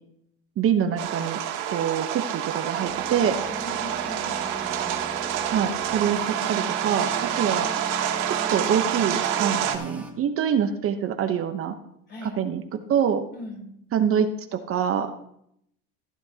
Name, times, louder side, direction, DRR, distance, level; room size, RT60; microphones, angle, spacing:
voice 1, 0.6-1.4 1.7-3.4 5.5-7.7 8.3-11.8 12.2-13.2 13.9-15.2, right 8 dB, 40° right, 7 dB, 1.0 m, -25 dB
sound 1, 1.0-9.8, right 10 dB, 65° right, 2.1 m, -28 dB
sound 2, 2.8-10.1, right 1 dB, 5° right, 2.1 m, -39 dB
voice 2, 3.1-4.9 12.1-12.4 13.3-13.7, left 1 dB, 30° left, 2 dB, 3.7 m, -40 dB
15.5 x 10.5 x 2.9 m, 0.75 s
supercardioid pair, 110°, 33 cm